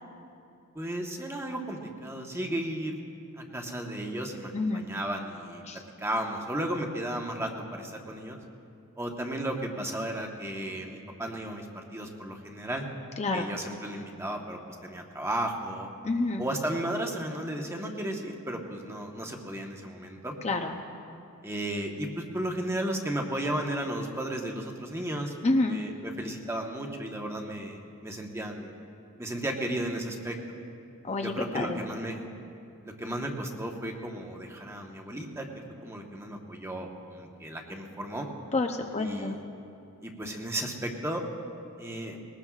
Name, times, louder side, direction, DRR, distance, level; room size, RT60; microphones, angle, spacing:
voice 1, 0.7-3.0 3.4-5.6 6.0-8.4 9.0-12.9 13.3-15.9 16.4-20.3 21.4-25.3 25.6-28.7 29.2-30.4 31.2-32.2 32.8-35.5 35.8-38.3 39.0-39.4 40.0-41.2 41.8-42.2, right 1 dB, 10° right, 1 dB, 1.2 m, -34 dB
voice 2, 4.5-4.9 5.7-5.8 13.2-13.5 16.0-16.4 20.4-20.7 25.4-25.8 31.0-31.8 38.5-39.4, left 2 dB, 30° left, 4 dB, 0.6 m, -28 dB
20.5 x 19.5 x 2.4 m, 2.6 s
head